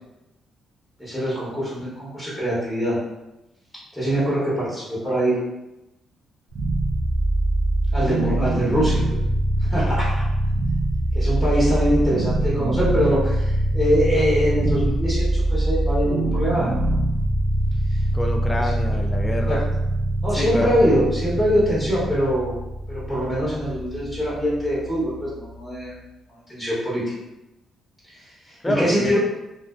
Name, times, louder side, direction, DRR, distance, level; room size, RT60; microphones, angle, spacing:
voice 1, 1.0-3.0 3.9-5.4 7.9-9.2 9.6-10.1 11.1-17.0 18.6-19.0 19.5-19.6 20.2-22.5 22.9-25.9 26.5-27.0 28.2-29.2, equal, 5° right, -9 dB, 1.0 m, -23 dB
sound 1, 6.5-25.6, right 1 dB, 80° right, 0.4 m, -23 dB
voice 2, 8.1-8.4 18.1-19.6 20.3-20.8 28.6-29.2, left 1 dB, 15° left, 2 dB, 0.3 m, -27 dB
2.5 x 2.1 x 2.3 m, 0.96 s
cardioid pair, 90°, 0 cm